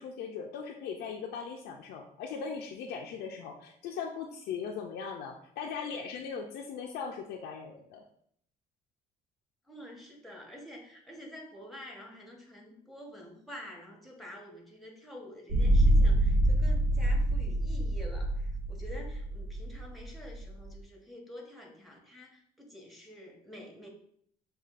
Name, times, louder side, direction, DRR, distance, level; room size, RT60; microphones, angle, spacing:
voice 1, 0.0-8.0, left 6 dB, 80° left, 1 dB, 0.5 m, -39 dB
voice 2, 9.7-23.9, equal, ahead, -1 dB, 1.0 m, -48 dB
sound 1, 15.5-20.7, right 1 dB, 85° right, 0.8 m, -26 dB
6.5 x 2.3 x 2.4 m, 0.66 s
cardioid pair, 110°, 17 cm